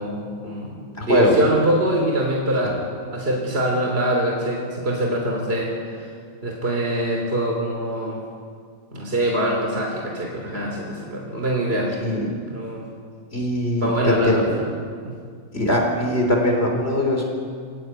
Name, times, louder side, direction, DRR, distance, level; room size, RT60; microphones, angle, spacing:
voice 1, 0.0-2.8 3.1-6.1 6.4-8.2 8.9-12.0 12.5-12.9 13.8-14.6 15.0-15.2, right 1 dB, 40° right, 0 dB, 3.5 m, -24 dB
voice 2, 0.9-1.4 12.0-12.3 13.3-14.4 15.5-17.2, left 1 dB, 45° left, 1 dB, 4.5 m, -21 dB
24.5 x 16.5 x 9.7 m, 2.2 s
omnidirectional pair, 1.5 m